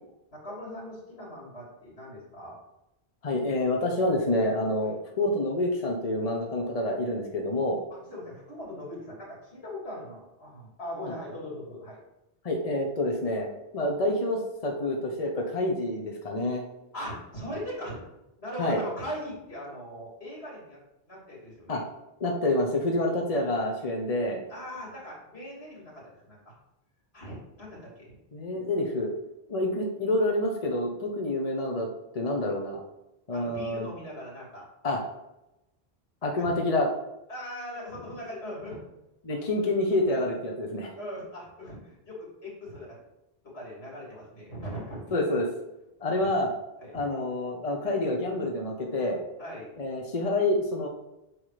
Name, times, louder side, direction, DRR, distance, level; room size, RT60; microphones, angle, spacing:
voice 1, 0.3-2.6 4.8-5.0 7.9-12.0 16.9-18.0 18.4-20.8 21.1-21.8 24.5-26.5 27.1-28.1 33.3-34.9 36.2-36.5 37.3-38.8 40.9-43.0 43.5-45.1 46.2-46.3 46.8-46.9 49.4-49.7, equal, 80° left, -5 dB, 3.3 m, -40 dB
voice 2, 3.2-7.8 11.0-11.1 12.4-16.6 18.6-18.8 21.7-21.8 22.2-24.4 28.3-29.1 29.5-31.9 32.1-32.8 33.3-33.9 34.8-35.0 36.2-36.9 39.2-41.0 45.1-45.5 46.0-46.5 46.9-49.2 49.8-50.9, left 1 dB, 35° left, 1 dB, 1.0 m, -27 dB
5.8 x 4.8 x 4.9 m, 0.91 s
omnidirectional pair, 1.0 m